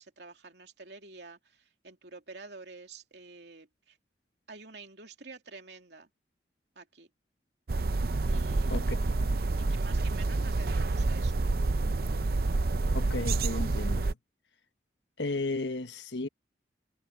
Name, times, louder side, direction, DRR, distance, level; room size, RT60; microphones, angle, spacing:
voice 1, 0.0-4.0 4.5-6.1 6.7-7.1 8.3-8.8 9.6-11.4, right 3 dB, 75° right, 3.0 m, -48 dB
sound 1, 7.7-14.1, right 3 dB, 60° right, 0.6 m, -28 dB
voice 2, 12.9-14.2 15.2-16.3, left 2 dB, 85° left, 1.3 m, -34 dB
head